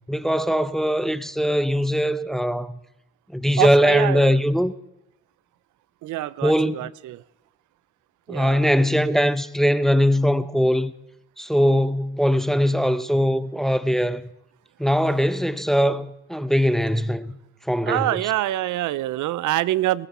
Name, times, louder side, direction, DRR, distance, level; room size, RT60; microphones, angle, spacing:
voice 1, 0.1-2.8 3.3-4.7 6.4-6.9 8.3-10.9 11.4-14.2 14.8-17.3 17.7-18.2, equal, ahead, 0.7 m, -21 dB
voice 2, 3.6-4.4 6.0-7.2 8.3-8.7 17.9-20.1, right 15 dB, 80° right, 0.6 m, -25 dB
20.0 x 14.0 x 4.3 m
cardioid pair, 90°, 30 cm